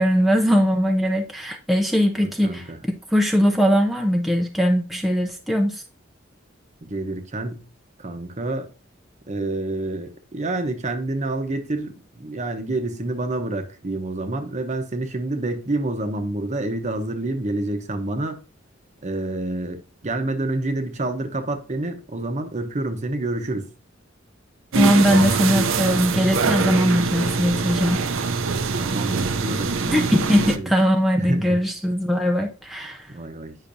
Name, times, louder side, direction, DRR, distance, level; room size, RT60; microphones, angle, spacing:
voice 1, 0.0-2.7 3.1-5.8 24.7-28.0 29.9-33.1, equal, ahead, 0.5 m, -20 dB
voice 2, 2.2-2.8 6.8-7.6 8.0-8.7 9.3-18.4 19.0-23.7 28.8-30.7 31.2-31.6 33.1-33.6, right 2 dB, 35° right, 0.8 m, -28 dB
sound 1, 24.7-30.6, right 4 dB, 80° right, 0.6 m, -24 dB
8.5 x 5.7 x 2.6 m
head